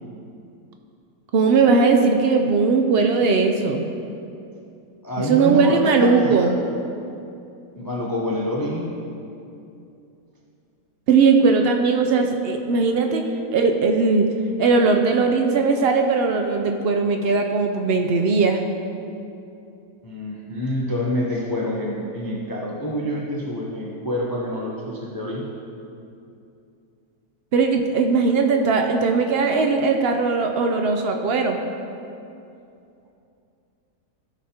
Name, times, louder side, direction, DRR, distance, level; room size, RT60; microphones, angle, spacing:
voice 1, 1.3-3.9 5.3-6.5 11.1-13.2 13.5-14.3 14.6-18.6 27.5-31.6, right 4 dB, 80° right, 4 dB, 0.5 m, -19 dB
voice 2, 5.0-6.5 7.7-8.9 20.0-25.4, equal, 25° left, -3 dB, 0.5 m, -27 dB
14.0 x 6.2 x 2.8 m, 2.6 s
omnidirectional pair, 1.7 m